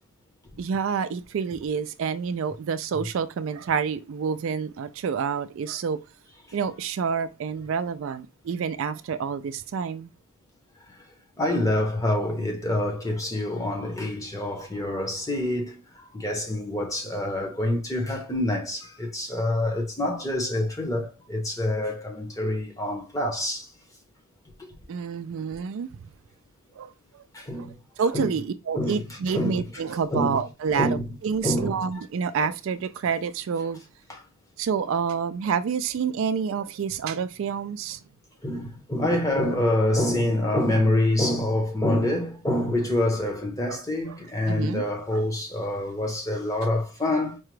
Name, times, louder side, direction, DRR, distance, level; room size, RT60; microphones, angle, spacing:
voice 1, 0.6-6.0 6.5-10.1 24.9-26.0 26.8-27.2 27.6-27.7 28.0-33.8 34.6-38.0 43.7-44.2 44.5-44.8 45.1-45.2, right 6 dB, 60° right, 0.3 m, -28 dB
voice 2, 11.4-23.7 24.6-24.7 27.3-27.7 28.1-28.3 28.7-29.0 29.3-29.6 30.1-30.4 30.8-31.1 31.4-31.8 34.1-34.2 38.4-47.4, left 1 dB, 15° left, 0.8 m, -26 dB
4.7 x 2.3 x 3.1 m
head